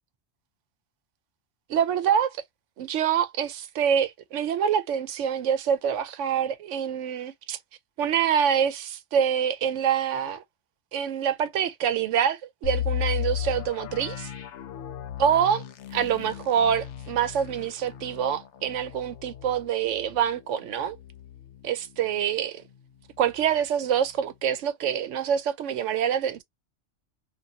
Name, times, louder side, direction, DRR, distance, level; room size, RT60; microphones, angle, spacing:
voice 1, 1.7-2.4 2.8-7.6 8.0-10.4 10.9-14.3 15.2-15.6 15.9-21.0 21.6-22.6 23.2-26.4, right 8 dB, 80° right, 0.9 m, -26 dB
sound 1, 12.6-22.4 22.7-22.8 23.3-23.6, left 11 dB, 75° left, 0.9 m, -35 dB
2.6 x 2.5 x 2.7 m
omnidirectional pair, 1.2 m